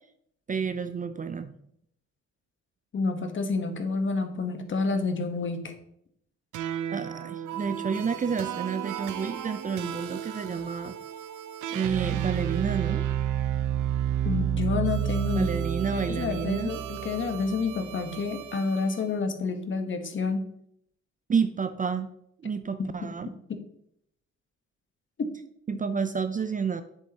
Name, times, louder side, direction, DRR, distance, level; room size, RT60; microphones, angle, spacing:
voice 1, 0.5-1.5 6.9-11.0 11.7-13.1 15.3-16.7 21.3-22.1 22.4-23.3 25.7-26.8, right 6 dB, 25° right, 11 dB, 0.4 m, -30 dB
voice 2, 2.9-5.7 14.3-15.5 15.9-20.4 22.8-22.9 23.5-23.6 25.2-25.3, left 4 dB, 40° left, 7 dB, 1.1 m, -29 dB
sound 1, 6.5-19.0, right 10 dB, 80° right, 0.7 m, -31 dB
7.9 x 7.4 x 2.8 m, 0.72 s
cardioid pair, 90°, 30 cm